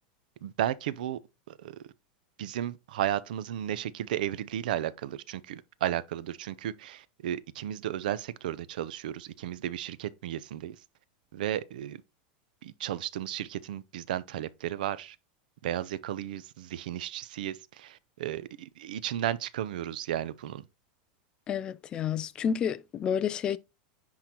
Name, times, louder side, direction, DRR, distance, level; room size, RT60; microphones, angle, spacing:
voice 1, 0.4-1.2 1.6-1.8 2.4-10.8 11.3-12.0 12.6-15.2 15.6-20.6, right 12 dB, 75° right, 0.6 m, -34 dB
voice 2, 21.5-23.6, left 8 dB, 20° left, 0.3 m, -30 dB
10.0 x 3.8 x 2.9 m
supercardioid pair, 175°, 5 cm